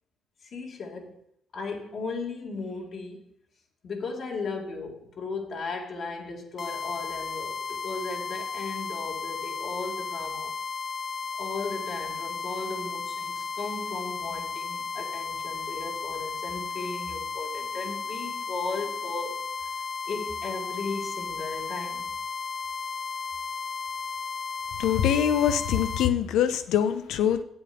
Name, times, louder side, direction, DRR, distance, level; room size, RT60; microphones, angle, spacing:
voice 1, 0.4-1.2 1.5-3.2 3.8-10.5 11.4-19.5 20.1-22.1, left 3 dB, 60° left, 0 dB, 2.2 m, -36 dB
sound 1, 6.6-26.1, left 5 dB, 40° left, 0.6 m, -34 dB
voice 2, 24.8-27.4, left 9 dB, 90° left, 10 dB, 0.8 m, -24 dB
8.1 x 8.0 x 5.2 m, 0.71 s
cardioid pair, 90°, 0 cm